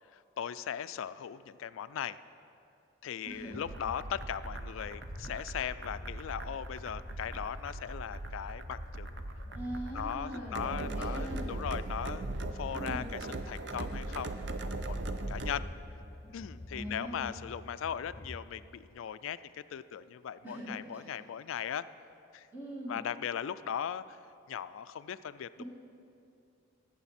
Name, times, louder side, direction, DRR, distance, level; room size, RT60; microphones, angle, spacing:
voice 1, 0.4-2.2 3.0-9.3 9.9-12.3 12.5-15.0 15.3-15.6 16.3-19.4 19.7-21.8 22.3-22.5 22.9-24.2 24.5-25.6, left 8 dB, 80° left, 14 dB, 0.3 m, -38 dB
sound 1, 3.3-18.9, left 1 dB, 30° left, 0.7 m, -49 dB
voice 2, 3.3-3.6 9.5-11.5 12.7-13.1 16.7-17.3 20.4-21.0 22.5-23.0 25.6-25.7, equal, 10° right, -6 dB, 1.8 m, -41 dB
sound 2, 3.6-15.6, right 2 dB, 55° right, 0.6 m, -39 dB
17.5 x 7.9 x 4.2 m, 2.6 s
head